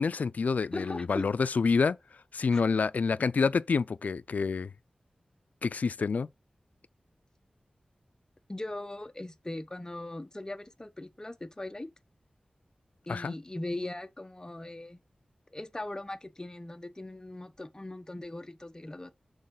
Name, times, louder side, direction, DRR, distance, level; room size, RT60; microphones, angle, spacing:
voice 1, 0.0-2.0 2.3-4.7 5.6-6.3 13.1-13.3, left 5 dB, 80° left, 0.3 m, -27 dB
voice 2, 0.7-1.3 2.5-2.6 8.5-11.9 13.1-15.0 15.5-19.1, left 1 dB, 25° left, 0.9 m, -39 dB
6.4 x 4.7 x 3.8 m
wide cardioid pair, 60°, 3 cm